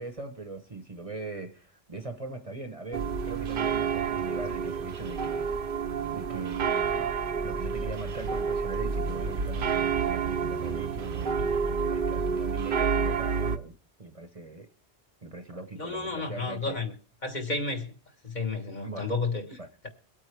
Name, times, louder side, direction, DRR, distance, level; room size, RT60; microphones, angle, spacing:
voice 1, 0.0-5.5 6.1-7.1 7.4-14.7 15.2-16.8 18.8-19.1 19.6-19.7, right 3 dB, 35° right, 1.0 m, -40 dB
sound 1, 2.9-13.6, right 6 dB, 55° right, 0.9 m, -29 dB
voice 2, 15.7-16.9 17.2-17.9 18.2-19.5, left 3 dB, 40° left, 1.6 m, -31 dB
23.0 x 8.7 x 3.3 m
omnidirectional pair, 1.1 m